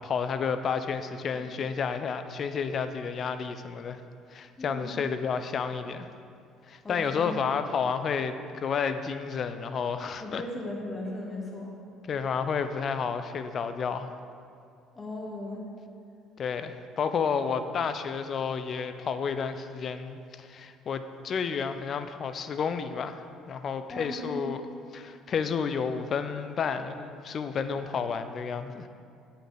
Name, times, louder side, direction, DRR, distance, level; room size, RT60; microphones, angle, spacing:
voice 1, 0.0-4.0 4.3-6.1 6.7-10.4 12.1-14.1 16.4-24.6 24.9-28.9, left 6 dB, 45° left, 9 dB, 0.8 m, -31 dB
voice 2, 4.6-5.0 6.8-7.3 10.2-11.7 14.9-15.6 23.9-24.4, left 1 dB, 25° left, -3 dB, 2.6 m, -37 dB
9.2 x 7.0 x 7.8 m, 2.4 s
figure-of-eight pair, 55°, 0 cm